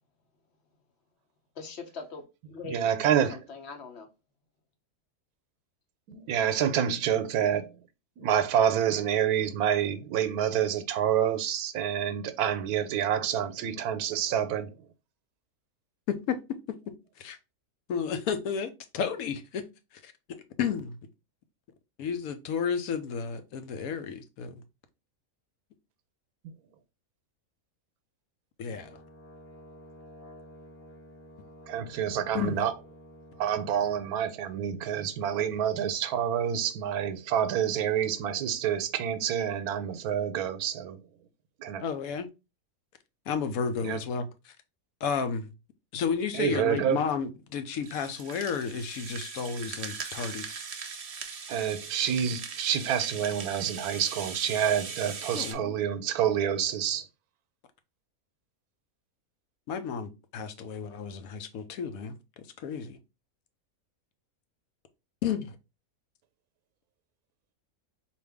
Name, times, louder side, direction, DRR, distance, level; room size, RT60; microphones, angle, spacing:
voice 1, 1.6-4.1, left 4 dB, 55° left, 1.0 m, -42 dB
voice 2, 2.6-3.4 6.1-7.7 8.2-14.8 31.7-32.7 33.4-41.0 41.6-41.8 43.8-44.0 46.3-47.0 51.5-57.1, right 9 dB, 90° right, 1.1 m, -28 dB
voice 3, 16.1-16.4 16.7-16.9 17.2-17.4 17.9-19.7 20.0-20.1 20.6-21.0 22.0-24.6 28.6-28.9 32.3-32.7 41.8-42.3 43.3-44.5 45.0-45.5 45.9-50.5 55.3-55.7 59.7-63.0 65.2-65.6, left 6 dB, 75° left, 1.0 m, -32 dB
Brass instrument, 28.6-34.1, equal, 15° left, 0.7 m, -51 dB
Rattle (instrument), 47.8-55.5, right 5 dB, 70° right, 0.3 m, -40 dB
4.4 x 2.5 x 3.4 m
omnidirectional pair, 1.5 m